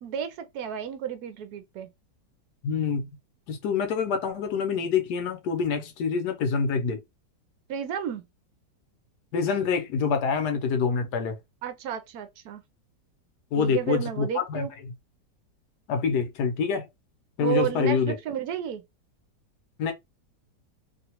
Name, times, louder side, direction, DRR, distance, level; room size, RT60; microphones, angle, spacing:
voice 1, 0.0-1.9 7.7-8.2 11.6-12.6 13.6-14.7 17.4-18.8, right 10 dB, 70° right, 1.0 m, -32 dB
voice 2, 2.6-3.1 3.5-7.0 9.3-11.3 13.5-14.7 15.9-16.9 17.4-18.2 19.8-19.9, left 6 dB, 70° left, 1.4 m, -26 dB
3.2 x 2.3 x 2.9 m
omnidirectional pair, 1.9 m